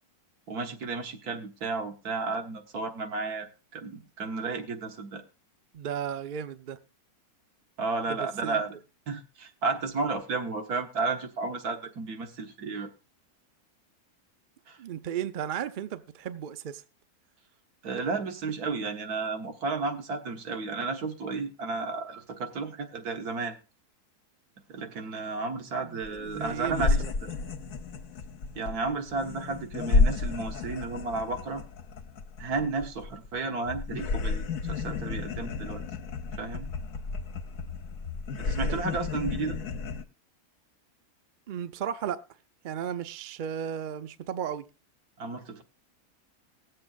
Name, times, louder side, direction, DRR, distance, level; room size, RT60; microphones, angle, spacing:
voice 1, 0.5-5.2 7.8-8.7 9.1-12.9 14.7-14.8 17.8-23.6 24.7-27.3 28.6-31.6 32.4-35.8 36.4-36.7 38.4-39.6 45.2-45.6, right 4 dB, 80° right, 1.8 m, -33 dB
voice 2, 5.7-6.8 8.1-8.8 14.8-16.8 25.8-27.1 38.6-38.8 41.5-42.2 42.6-44.6, right 9 dB, 55° right, 0.5 m, -35 dB
sound 1, 26.0-26.1 26.3-33.4 33.7-40.0, left 4 dB, 65° left, 1.4 m, -31 dB
20.5 x 7.7 x 2.3 m
omnidirectional pair, 1.6 m